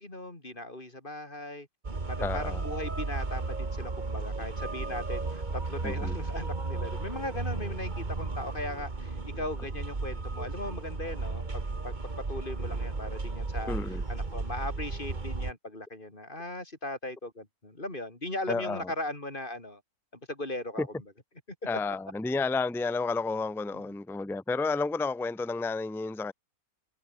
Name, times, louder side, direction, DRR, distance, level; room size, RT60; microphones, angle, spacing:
voice 1, 0.0-1.7 2.1-5.4 5.7-11.9 12.3-19.8 20.3-20.9 21.9-22.0 23.7-23.8, left 1 dB, 30° left, 4.3 m, -38 dB
sound 1, 1.8-15.5, right 3 dB, 30° right, 2.0 m, -34 dB
voice 2, 2.2-2.6 5.8-6.2 13.7-14.0 18.5-18.9 20.8-20.9 21.7-26.3, left 3 dB, ahead, 0.8 m, -31 dB
omnidirectional pair, 1.6 m